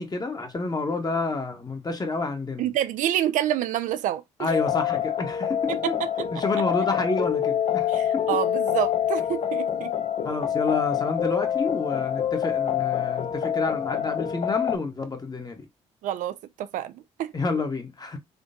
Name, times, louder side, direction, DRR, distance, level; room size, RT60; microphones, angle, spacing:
voice 1, 0.0-2.6 4.4-6.0 6.3-8.4 10.2-15.6 17.3-18.2, left 3 dB, 25° left, 1.2 m, -29 dB
voice 2, 2.6-4.5 5.7-5.9 7.9-9.9 16.0-16.9 17.2-17.3, right 11 dB, 60° right, 0.4 m, -28 dB
sound 1, 4.5-14.8, left 10 dB, 45° left, 0.7 m, -26 dB
3.8 x 3.3 x 2.6 m
hypercardioid pair, 45°, 15 cm